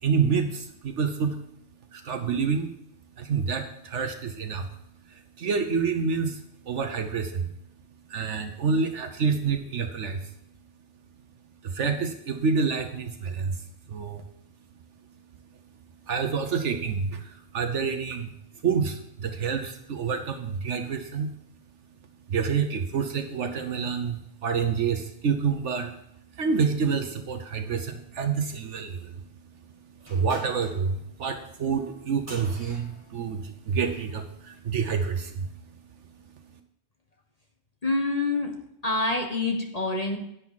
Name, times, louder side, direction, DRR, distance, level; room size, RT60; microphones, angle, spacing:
voice 1, 0.0-1.4 1.9-2.7 3.1-4.8 5.0-7.5 7.9-10.3 11.6-14.2 14.7-21.4 22.2-36.6, right 5 dB, 65° right, 7 dB, 1.2 m, -28 dB
sound 1, 30.0-34.1, right 1 dB, 10° right, 4.9 m, -47 dB
voice 2, 37.8-38.5 38.8-40.2, left 2 dB, 30° left, 3 dB, 1.3 m, -26 dB
10.5 x 9.5 x 4.1 m, 0.77 s
omnidirectional pair, 1.3 m